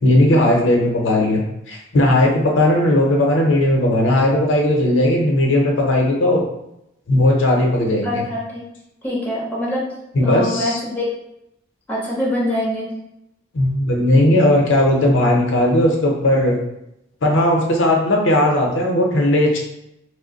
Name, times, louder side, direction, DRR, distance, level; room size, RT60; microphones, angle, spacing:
voice 1, 0.0-1.4 1.7-6.4 7.1-8.2 10.1-10.8 13.5-16.6 17.2-19.6, left 1 dB, 85° left, 0 dB, 0.7 m, -16 dB
voice 2, 8.0-8.6 9.0-9.8 10.2-11.1 11.9-12.9, left 1 dB, 10° left, -6 dB, 0.9 m, -24 dB
3.0 x 2.1 x 3.8 m, 0.84 s
head